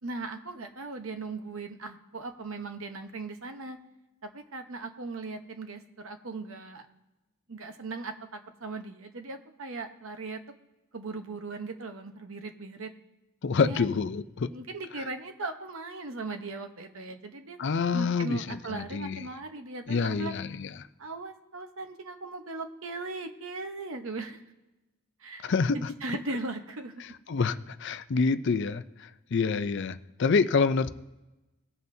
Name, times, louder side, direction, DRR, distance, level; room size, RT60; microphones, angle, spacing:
voice 1, 0.0-3.8 4.2-6.8 7.5-10.4 10.9-12.9 13.6-13.9 14.4-20.4 21.0-24.4 25.2-27.0, right 3 dB, 65° right, 6 dB, 0.9 m, -38 dB
voice 2, 13.4-14.5 17.6-19.2 19.9-20.7 25.4-25.9 27.3-30.9, left 5 dB, 50° left, 11 dB, 0.4 m, -27 dB
19.5 x 7.7 x 2.7 m, 1.0 s
head